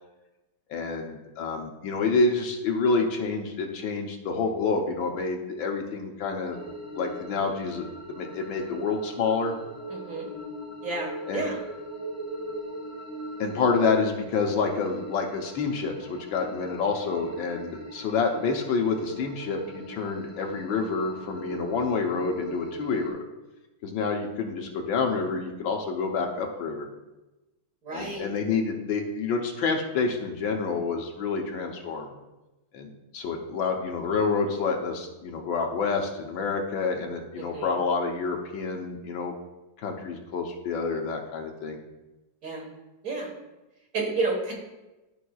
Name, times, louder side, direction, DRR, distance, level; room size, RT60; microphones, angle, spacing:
voice 1, 0.7-6.6 6.9-9.5 11.3-11.4 13.4-23.2 23.8-26.9 27.9-32.1 32.7-32.9 33.1-39.3 39.8-41.8, left 4 dB, 75° left, 2 dB, 1.6 m, -28 dB
sound 1, 6.5-23.1, right 1 dB, 15° left, 0.5 m, -40 dB
voice 2, 9.9-10.3 10.8-11.6 27.8-28.3 37.4-37.7 42.4-42.7 43.0-43.3 43.9-44.5, right 3 dB, 45° right, -2 dB, 1.8 m, -31 dB
13.0 x 5.0 x 2.3 m, 1.0 s
omnidirectional pair, 2.2 m